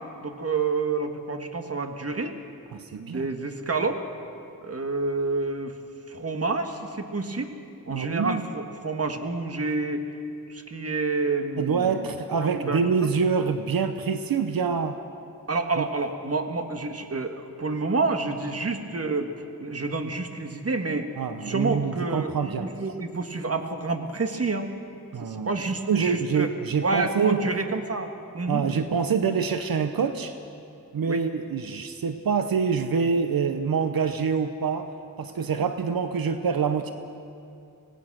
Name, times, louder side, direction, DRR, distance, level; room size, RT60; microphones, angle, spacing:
voice 1, 0.0-2.3 2.9-4.0 4.6-5.7 6.1-7.5 7.8-10.0 10.5-12.1 12.4-13.1 15.5-19.3 19.6-21.1 21.4-24.7 25.2-26.5 26.8-28.6 31.1-31.2, right 3 dB, 45° right, 6 dB, 1.6 m, -29 dB
voice 2, 2.7-3.3 7.9-8.4 11.6-15.0 15.8-15.9 21.2-22.7 25.1-25.6 25.9-27.6 28.5-30.4 30.9-34.9 35.2-36.9, right 6 dB, 85° right, 8 dB, 0.9 m, -26 dB
25.0 x 18.0 x 6.2 m, 2.6 s
wide cardioid pair, 85°, 34 cm